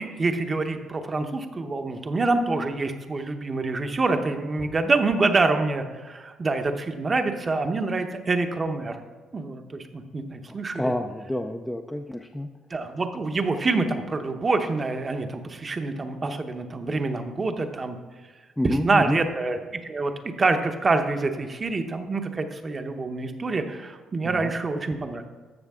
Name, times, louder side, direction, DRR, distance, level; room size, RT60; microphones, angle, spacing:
voice 1, 0.0-9.0 9.3-10.9 12.7-18.0 18.8-20.1 20.4-25.2, right 3 dB, 30° right, 7 dB, 0.9 m, -26 dB
voice 2, 10.5-12.5 18.6-19.3 24.2-24.5, left 1 dB, 5° left, 3 dB, 0.5 m, -29 dB
13.0 x 6.5 x 3.6 m, 1.4 s
cardioid pair, 105°, 0 cm